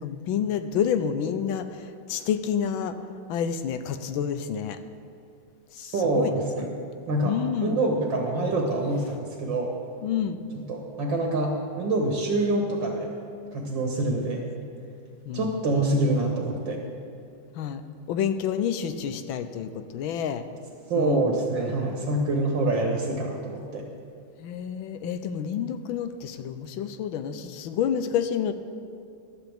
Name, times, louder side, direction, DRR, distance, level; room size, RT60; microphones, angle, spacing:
voice 1, 0.0-3.0 3.3-4.8 5.7-6.4 7.2-7.8 10.0-10.4 15.2-15.5 17.5-17.8 18.1-20.4 20.9-21.4 24.4-28.5, left 8 dB, 85° left, 10 dB, 1.5 m, -29 dB
voice 2, 5.8-6.7 7.1-7.4 7.6-9.7 10.5-13.1 13.5-14.5 15.3-16.8 20.9-23.8, right 2 dB, 70° right, 1 dB, 2.2 m, -26 dB
15.0 x 12.5 x 3.6 m, 2.5 s
omnidirectional pair, 2.1 m